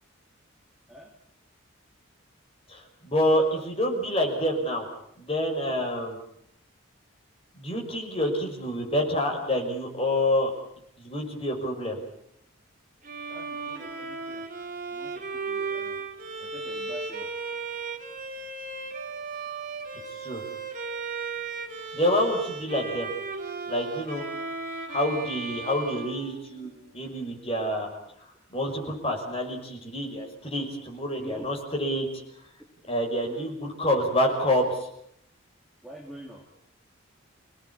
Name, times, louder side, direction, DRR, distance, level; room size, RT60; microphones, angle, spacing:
voice 1, 2.7-4.9 5.2-6.2 7.5-10.5 11.0-12.0 20.2-20.4 21.9-23.1 23.7-24.2 24.9-27.9 28.5-32.1 32.9-34.9, left 1 dB, 25° left, 2 dB, 6.0 m, -27 dB
Bowed string instrument, 13.0-26.9, right 4 dB, 40° right, 3.6 m, -36 dB
voice 2, 13.3-14.5 14.9-16.0 16.4-17.3 31.2-31.5 33.3-33.4 35.8-36.4, right 1 dB, ahead, -1 dB, 2.7 m, -45 dB
28.0 x 18.5 x 8.6 m, 0.73 s
head